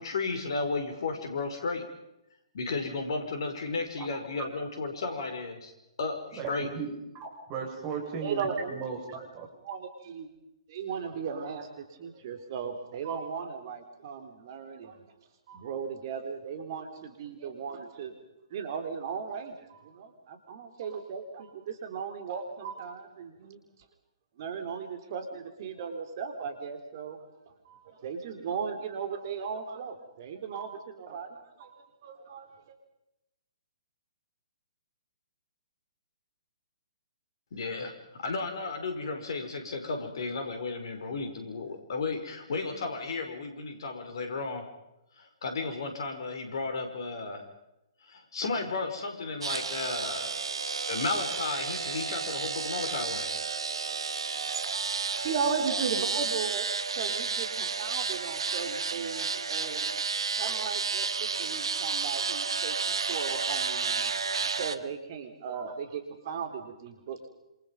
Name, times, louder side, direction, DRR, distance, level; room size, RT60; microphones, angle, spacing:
voice 1, 0.0-1.9 2.5-5.7 6.0-6.7 37.5-44.7 45.2-47.4 48.1-50.3 50.9-53.3, left 3 dB, 55° left, 6 dB, 5.1 m, -34 dB
voice 2, 6.3-9.5, right 5 dB, 30° right, 2 dB, 6.9 m, -37 dB
voice 3, 8.2-8.8 9.6-10.3 10.7-15.1 15.5-18.1 18.5-23.6 24.4-27.2 27.6-32.8 55.2-56.7 56.9-59.9 60.4-64.1 64.6-67.3, right 6 dB, 45° right, 7 dB, 4.0 m, -37 dB
sound 1, 49.4-64.8, right 5 dB, 65° right, 1.5 m, -31 dB
27.5 x 27.0 x 5.4 m, 0.91 s
figure-of-eight pair, 125°, 3 cm